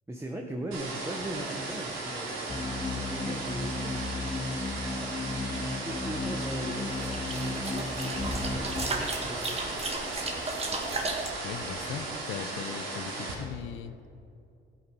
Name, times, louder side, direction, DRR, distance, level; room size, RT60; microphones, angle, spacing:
voice 1, 0.1-4.2 4.9-5.1 5.5-9.6, right 1 dB, 15° right, 1 dB, 1.2 m, -40 dB
sound 1, 0.7-13.3, right 2 dB, 90° right, 3.2 m, -36 dB
sound 2, 2.5-8.9, left 3 dB, 15° left, 0.7 m, -35 dB
sound 3, 6.9-11.3, right 3 dB, 30° right, 1.8 m, -34 dB
voice 2, 11.4-14.0, left 8 dB, 85° left, 10 dB, 0.7 m, -39 dB
14.0 x 8.6 x 5.3 m, 2.6 s
cardioid pair, 90°, 20 cm